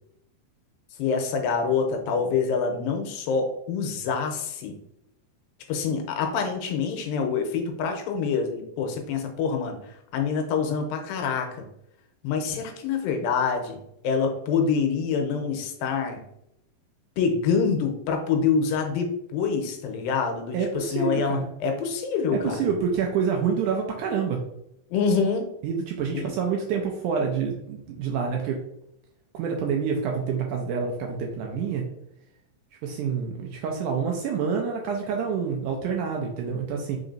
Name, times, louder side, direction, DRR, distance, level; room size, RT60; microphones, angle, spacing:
voice 1, 1.0-4.8 5.7-11.6 12.2-13.8 14.0-16.2 17.2-22.6 24.9-25.5 26.1-26.3, left 5 dB, 90° left, 4 dB, 2.4 m, -26 dB
voice 2, 20.5-21.5 22.3-24.4 25.6-28.6 29.3-31.8 32.8-37.0, right 6 dB, 90° right, 1 dB, 1.7 m, -27 dB
5.0 x 3.8 x 2.6 m, 0.81 s
omnidirectional pair, 4.1 m